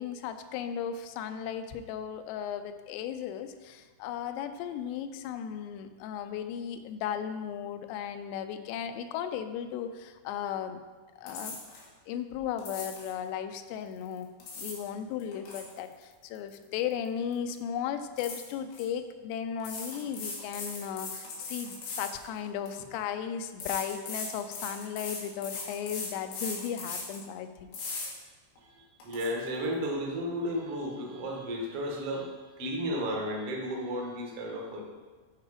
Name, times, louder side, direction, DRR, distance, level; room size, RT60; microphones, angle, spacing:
voice 1, 0.0-10.8 11.2-11.6 12.1-14.3 14.6-27.7, left 8 dB, 80° left, 8 dB, 2.6 m, -36 dB
sound 1, 11.3-11.9 12.6-13.1 14.2-14.9 15.2-17.1 17.3-17.6 18.2-18.8 19.6-22.8 23.6-27.2 27.7-28.1 28.6-28.7 29.0-29.3, left 3 dB, 65° left, 3.2 m, -39 dB
voice 2, 28.6-34.8, equal, 90° right, -2 dB, 1.2 m, -33 dB
10.5 x 4.8 x 4.9 m, 1.3 s
omnidirectional pair, 5.0 m